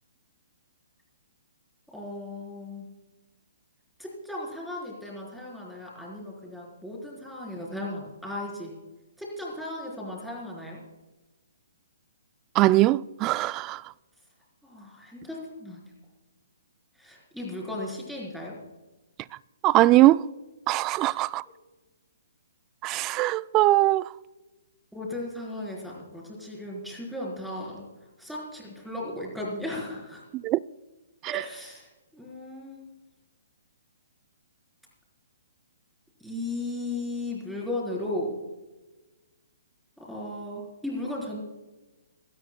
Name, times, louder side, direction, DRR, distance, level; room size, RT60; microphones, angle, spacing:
voice 1, 1.9-2.9 4.0-8.7 9.2-10.8 14.6-15.8 17.0-18.5 21.1-21.2 24.9-27.8 28.2-30.2 31.2-32.9 36.2-38.4 40.0-41.4, left 1 dB, ahead, 4.1 m, -36 dB
voice 2, 12.6-13.8 19.6-20.2 20.7-21.4 22.8-24.0 30.3-30.6 31.2-31.4, right 17 dB, 25° right, 0.3 m, -21 dB
25.5 x 13.5 x 2.3 m
hypercardioid pair, 145°, 0 cm